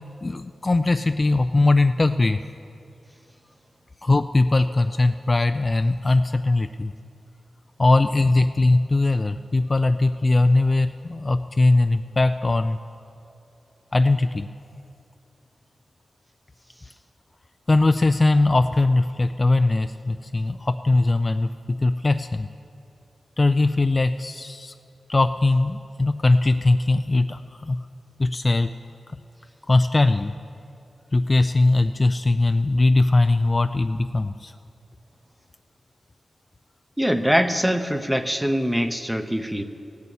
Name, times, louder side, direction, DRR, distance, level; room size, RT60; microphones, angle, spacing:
voice 1, 0.2-2.4 4.0-6.9 7.8-12.8 13.9-14.5 17.7-22.5 23.4-24.7 25.1-27.8 28.2-28.7 29.7-30.3 31.1-34.5, left 2 dB, 35° left, 9 dB, 0.3 m, -20 dB
voice 2, 37.0-39.6, equal, 5° right, 9 dB, 0.8 m, -23 dB
16.0 x 7.0 x 8.3 m, 2.6 s
cardioid pair, 65°, 0 cm